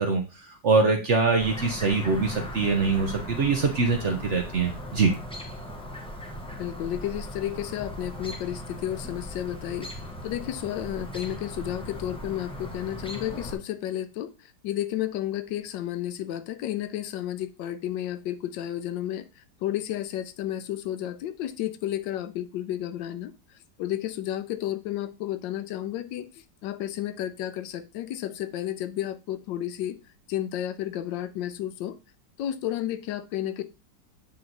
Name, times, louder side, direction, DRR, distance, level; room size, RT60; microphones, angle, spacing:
voice 1, 0.0-5.1, right 4 dB, 55° right, 4 dB, 0.8 m, -24 dB
Chirp tweet, 1.4-13.5, equal, 5° left, 0.6 m, -38 dB
voice 2, 6.6-9.9 10.2-23.3 23.8-26.3 26.6-30.0 30.3-32.0 32.4-33.6, left 12 dB, 90° left, 12 dB, 1.3 m, -32 dB
8.4 x 3.0 x 3.9 m, 0.29 s
omnidirectional pair, 2.0 m